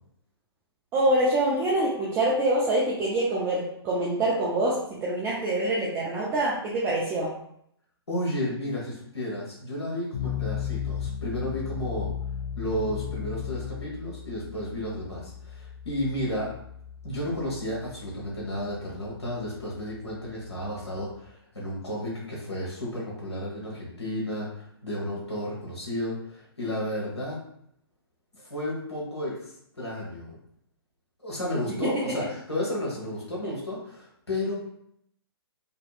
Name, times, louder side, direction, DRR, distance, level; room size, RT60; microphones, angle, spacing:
voice 1, 0.9-7.3 31.8-32.3 33.4-33.5, right 1 dB, 15° right, -5 dB, 0.4 m, -25 dB
voice 2, 8.1-12.1 12.6-16.5 17.0-27.4 28.3-30.4 31.2-34.5, left 1 dB, 85° left, -5 dB, 1.0 m, -32 dB
sound 1, 10.1-21.3, left 8 dB, 50° left, 0.4 m, -36 dB
2.8 x 2.7 x 2.3 m, 0.71 s
figure-of-eight pair, 125°, 14 cm